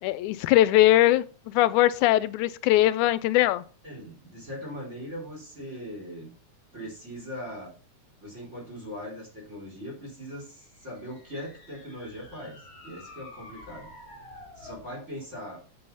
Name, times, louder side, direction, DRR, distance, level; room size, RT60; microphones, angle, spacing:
voice 1, 0.0-3.6, left 15 dB, 85° left, 2.0 m, -21 dB
voice 2, 3.8-6.3 6.7-7.7 8.2-13.9 14.6-15.6, equal, 20° right, 4.2 m, -40 dB
sound 1, 10.5-14.9, left 2 dB, 25° left, 2.2 m, -49 dB
7.7 x 7.4 x 5.6 m
omnidirectional pair, 3.4 m